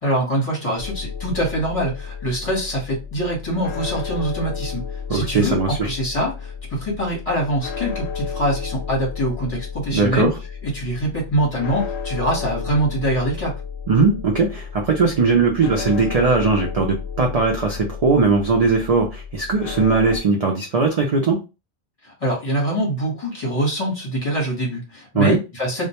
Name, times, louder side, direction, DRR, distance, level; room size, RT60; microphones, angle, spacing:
voice 1, 0.0-4.8 5.1-10.3 10.6-13.5 22.0-25.9, right 1 dB, 35° left, -3 dB, 1.1 m, -24 dB
sound 1, 0.8-20.2, left 6 dB, 80° left, 0.8 m, -32 dB
voice 2, 5.1-5.8 9.9-10.3 13.9-21.4 25.1-25.4, right 4 dB, 55° right, 1 dB, 0.4 m, -19 dB
2.2 x 2.1 x 2.8 m, 0.28 s
omnidirectional pair, 1.1 m